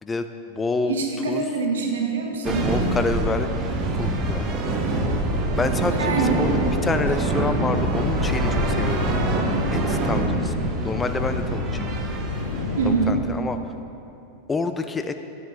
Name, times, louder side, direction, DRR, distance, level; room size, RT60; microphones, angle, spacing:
voice 1, 0.0-1.0 1.3-1.4 2.4-3.5 4.0-4.4 5.6-6.5 6.8-9.1 9.7-12.0 12.8-13.6 14.5-15.1, left 3 dB, 15° left, 8 dB, 0.3 m, -28 dB
voice 2, 0.9-2.7 6.0-6.4 12.8-13.2, right 4 dB, 65° right, 2 dB, 1.0 m, -24 dB
sound 1, 2.4-13.1, right 2 dB, 30° right, 0.8 m, -25 dB
sound 2, 8.2-13.2, left 4 dB, 65° left, 0.6 m, -30 dB
9.8 x 7.3 x 2.9 m, 2.7 s
figure-of-eight pair, 90°, 0 cm